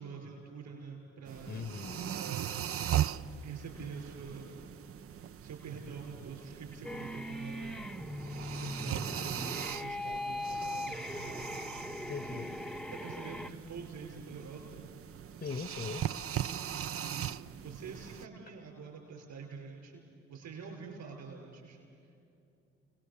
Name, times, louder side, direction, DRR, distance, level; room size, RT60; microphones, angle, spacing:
voice 1, 0.0-1.7 2.2-2.7 3.0-3.1 3.4-4.7 5.4-7.8 8.5-11.5 12.2-14.9 16.5-20.0 20.3-22.2, right 5 dB, 65° right, 1 dB, 6.2 m, -46 dB
sound 1, 1.2-18.2, right 11 dB, 45° right, 0.6 m, -39 dB
voice 2, 1.5-2.1 12.1-12.6 15.4-16.1, left 5 dB, 35° left, 14 dB, 1.1 m, -40 dB
sound 2, 6.8-13.5, left 1 dB, ahead, 0.8 m, -40 dB
29.0 x 19.5 x 7.0 m, 2.6 s
hypercardioid pair, 40°, 31 cm